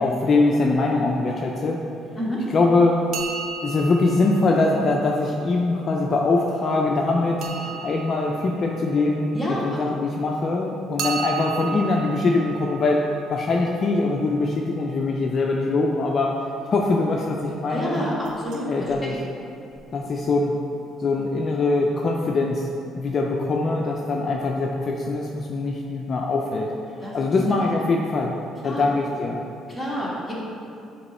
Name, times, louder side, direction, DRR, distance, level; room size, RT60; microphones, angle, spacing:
voice 1, 0.0-1.8 2.5-3.0 3.6-13.0 13.3-16.3 16.7-18.0 18.7-19.1 19.9-20.5 21.0-22.7 23.0-26.7 27.1-28.3 28.6-29.4, left 3 dB, 40° left, 0 dB, 0.4 m, -22 dB
sound 1, 3.1-5.8 7.4-10.1 11.0-14.8 18.2-18.6 18.9-19.0 19.7-19.8 20.1-20.2, right 6 dB, 75° right, 0.6 m, -36 dB
voice 2, 9.3-9.8 17.7-19.2 27.0-27.2 28.6-28.9 29.7-30.3, equal, ahead, -7 dB, 1.4 m, -29 dB
7.9 x 3.0 x 4.2 m, 2.6 s
cardioid pair, 130°, 0 cm